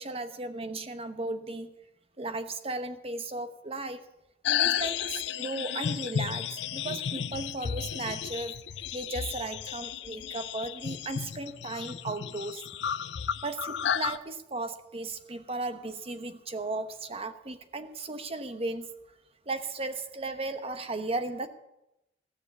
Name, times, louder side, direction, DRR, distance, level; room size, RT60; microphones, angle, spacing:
voice 1, 0.0-1.7 2.2-4.0 4.4-8.6 8.9-12.6 13.4-18.9 19.5-21.5, right 2 dB, 35° right, 9 dB, 1.0 m, -36 dB
sound 1, 4.5-14.2, left 8 dB, 70° left, 0.5 m, -33 dB
16.0 x 6.6 x 8.2 m, 0.88 s
head